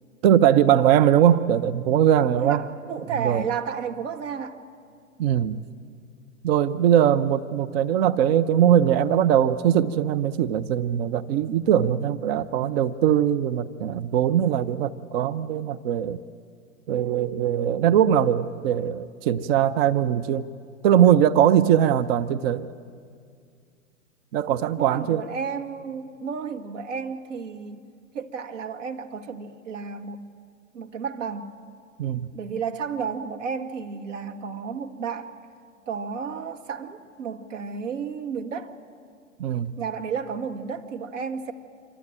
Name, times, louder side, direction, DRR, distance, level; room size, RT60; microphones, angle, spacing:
voice 1, 0.2-2.6 3.2-3.4 5.2-5.6 6.4-16.2 16.9-20.4 20.8-22.7 24.3-25.2 32.0-32.3 39.4-39.7, right 10 dB, 45° right, 13 dB, 0.9 m, -21 dB
voice 2, 2.3-4.6 24.8-27.9 28.1-30.3 30.7-31.6 32.3-35.3 35.9-38.7 39.8-41.5, right 6 dB, 65° right, 5 dB, 2.3 m, -32 dB
27.0 x 24.5 x 9.0 m, 2.2 s
figure-of-eight pair, 105°, 40 cm